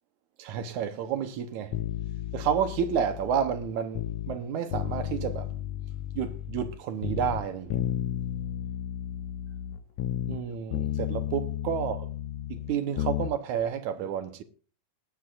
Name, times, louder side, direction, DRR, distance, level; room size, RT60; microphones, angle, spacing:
voice 1, 0.4-1.8 2.3-5.5 6.2-7.8 10.3-12.1 12.5-14.4, right 8 dB, 70° right, 2.0 m, -30 dB
sound 1, 1.7-4.4 4.7-6.8 7.0-10.4 10.7-13.3 13.6-13.7, left 12 dB, 85° left, 1.6 m, -33 dB
20.0 x 10.0 x 2.5 m
omnidirectional pair, 4.1 m